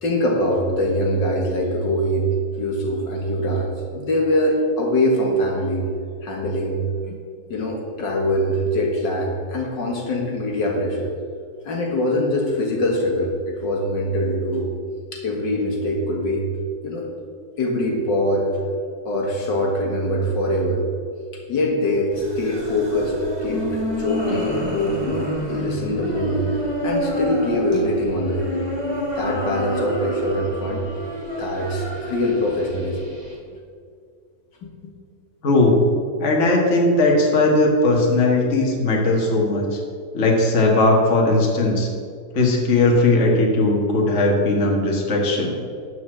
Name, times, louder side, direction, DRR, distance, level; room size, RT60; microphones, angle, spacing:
voice 1, 0.0-2.3 2.6-5.9 6.2-7.2 7.5-11.1 11.6-14.7 15.1-16.5 16.8-17.1 17.6-18.6 19.1-20.8 21.3-23.7 24.0-26.4 26.8-28.6 29.2-30.9 31.4-33.0 34.6-34.9, left 1 dB, 75° left, 0 dB, 2.1 m, -23 dB
sound 1, 22.1-33.3, equal, 15° right, 2.5 m, -28 dB
voice 2, 35.4-35.9 36.2-39.8 40.1-41.9 42.3-45.6, left 2 dB, 40° left, -1 dB, 1.8 m, -18 dB
12.0 x 4.8 x 7.7 m, 2.2 s
omnidirectional pair, 2.0 m